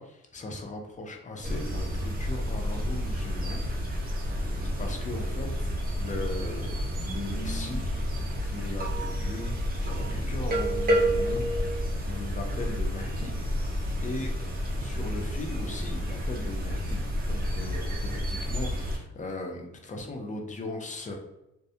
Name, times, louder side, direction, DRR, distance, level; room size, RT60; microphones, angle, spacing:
voice 1, 0.0-4.1 4.6-6.8 7.1-8.0 8.4-11.5 12.1-13.4 14.0-14.3 14.8-21.1, left 2 dB, 25° left, 2 dB, 0.5 m, -38 dB
sound 1, 1.4-19.0, equal, 30° right, 0.5 m, -30 dB
2.2 x 2.1 x 2.7 m, 0.88 s
cardioid pair, 90°, 30 cm